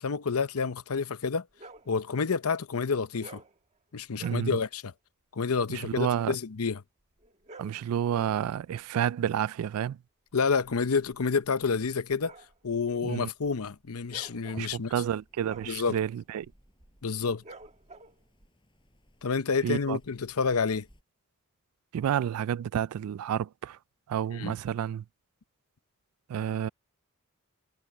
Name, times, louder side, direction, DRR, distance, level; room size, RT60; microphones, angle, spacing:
voice 1, 0.0-1.4 1.9-3.4 3.9-4.9 5.3-6.8 10.3-12.3 12.6-14.9 15.7-16.0 17.0-17.4 19.2-20.9 24.3-24.5, left 5 dB, 90° left, 0.7 m, -29 dB
sound 1, 1.5-1.9 3.1-3.6 4.1-4.5 7.2-7.9 10.4-18.5, right 2 dB, 35° right, 1.3 m, -51 dB
voice 2, 4.2-4.6 5.7-6.4 7.6-10.0 13.0-13.3 14.6-16.5 19.6-20.0 21.9-23.8 24.1-25.0 26.3-26.7, right 9 dB, 90° right, 0.3 m, -30 dB
sound 2, 14.7-21.0, equal, 25° left, 7.4 m, -65 dB
head